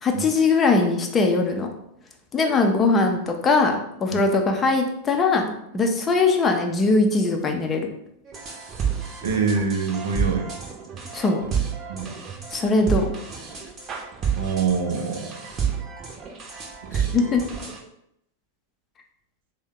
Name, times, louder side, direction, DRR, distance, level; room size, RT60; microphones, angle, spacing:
voice 1, 0.0-1.7 2.3-7.9 11.1-11.4 12.5-13.1 17.1-17.4, left 3 dB, 20° left, 3 dB, 0.5 m, -21 dB
sound 1, 8.3-17.8, right 7 dB, 30° right, 0.8 m, -30 dB
voice 2, 9.2-10.5 11.9-12.1 14.4-15.3 16.8-17.3, right 5 dB, 60° right, 3 dB, 0.5 m, -25 dB
3.5 x 2.1 x 3.6 m, 0.77 s
figure-of-eight pair, 90°, 0 cm